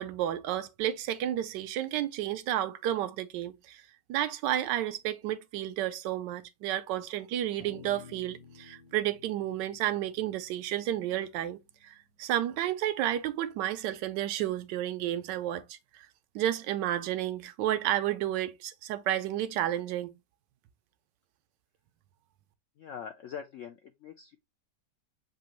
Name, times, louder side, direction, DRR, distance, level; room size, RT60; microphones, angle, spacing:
voice 1, 0.0-3.8 4.1-16.0 16.3-20.1, right 12 dB, 90° right, 1.2 m, -31 dB
sound 1, 7.6-12.1, left 5 dB, 60° left, 1.7 m, -53 dB
voice 2, 22.8-24.4, left 8 dB, 80° left, 0.7 m, -43 dB
6.8 x 2.7 x 2.9 m
omnidirectional pair, 1.8 m